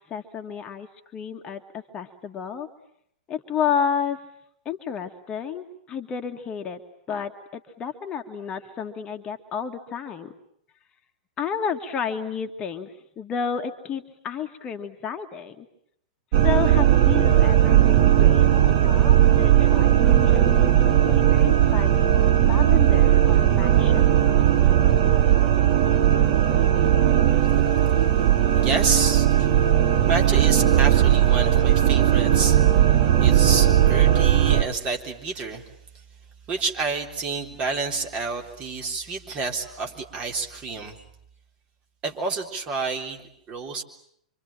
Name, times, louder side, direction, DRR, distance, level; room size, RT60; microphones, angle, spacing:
voice 1, 0.1-0.9 1.1-2.7 3.3-4.2 4.6-6.8 7.1-10.3 11.4-15.7 16.4-21.9 22.4-24.0, left 7 dB, 25° left, 5 dB, 1.7 m, -31 dB
sound 1, 16.3-34.6, right 11 dB, 45° right, 1.9 m, -18 dB
voice 2, 28.5-29.5 30.1-32.9 33.2-35.7 36.5-41.0 42.0-43.8, right 4 dB, 30° right, 2 dB, 3.8 m, -29 dB
26.0 x 25.5 x 8.9 m, 0.70 s
figure-of-eight pair, 100°, 4 cm